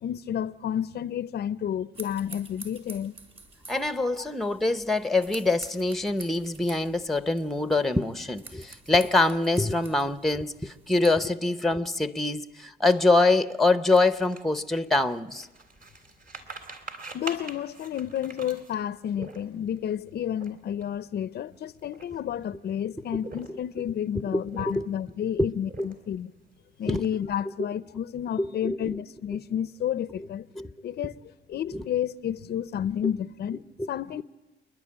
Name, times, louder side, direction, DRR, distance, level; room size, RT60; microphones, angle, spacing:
voice 1, 0.0-3.2 4.2-4.3 17.1-26.3 26.8-30.5 30.8-31.2 31.5-33.6 33.9-34.2, left 9 dB, 55° left, 0.6 m, -31 dB
sound 1, 1.9-11.3, right 3 dB, 30° right, 3.7 m, -48 dB
voice 2, 3.7-15.5 24.3-24.9 25.4-25.5 25.8-25.9 26.9-27.0 28.4-29.0 30.6-30.7 31.7-31.8 33.8-33.9, left 2 dB, ahead, 0.8 m, -24 dB
sound 2, 12.9-19.8 20.3-20.5 20.7-21.0 21.6-22.5 23.1-23.8 24.3-25.1 25.6-26.2 26.6-27.4, right 3 dB, 45° right, 3.4 m, -43 dB
28.5 x 11.0 x 8.7 m
cardioid pair, 90°, 20 cm